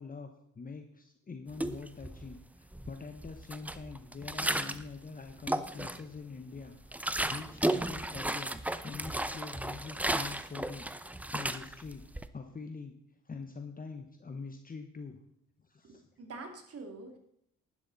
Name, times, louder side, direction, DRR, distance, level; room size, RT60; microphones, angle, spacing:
voice 1, 0.0-8.5 8.8-12.0 12.3-12.9 13.3-15.2 15.7-16.0, left 4 dB, 30° left, 6 dB, 1.1 m, -44 dB
sound 1, 1.5-2.4 2.7-4.9 5.3-6.2 6.6-12.3, right 1 dB, 5° right, 0.6 m, -34 dB
voice 2, 15.8-17.2, right 3 dB, 50° right, 4 dB, 2.8 m, -46 dB
11.5 x 11.0 x 4.1 m, 0.73 s
cardioid pair, 90°, 30 cm